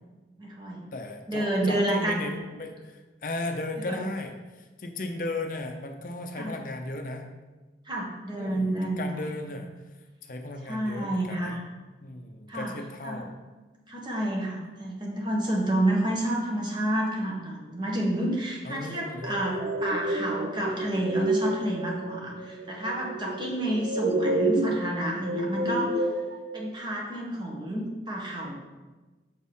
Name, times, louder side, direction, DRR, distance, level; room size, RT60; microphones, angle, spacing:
voice 1, 0.4-0.9 1.3-2.2 3.9-4.0 6.3-6.5 7.9-9.3 10.7-11.6 12.5-12.7 13.0-13.2 13.9-26.0 26.5-28.5, right 1 dB, 25° right, -2 dB, 1.3 m, -29 dB
voice 2, 0.9-7.3 8.3-9.7 10.2-11.6 12.0-13.3 18.6-19.6, left 2 dB, 50° left, 4 dB, 0.6 m, -36 dB
sound 1, 19.2-26.6, right 1 dB, 65° right, 0.9 m, -29 dB
7.2 x 4.3 x 5.4 m, 1.2 s
head